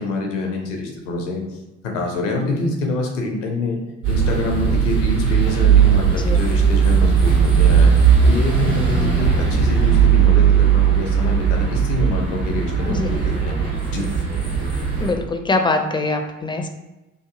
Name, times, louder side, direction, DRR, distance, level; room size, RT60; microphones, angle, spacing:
voice 1, 0.0-1.4 1.8-3.8 4.1-7.9 8.2-13.6 13.9-14.1, left 2 dB, 75° left, 1 dB, 0.7 m, -25 dB
sound 1, 4.0-15.1, right 7 dB, 80° right, 1.2 m, -17 dB
voice 2, 12.8-13.2 14.9-16.7, left 3 dB, 15° left, 5 dB, 0.4 m, -23 dB
2.9 x 2.5 x 3.6 m, 1.0 s
figure-of-eight pair, 40°, 37 cm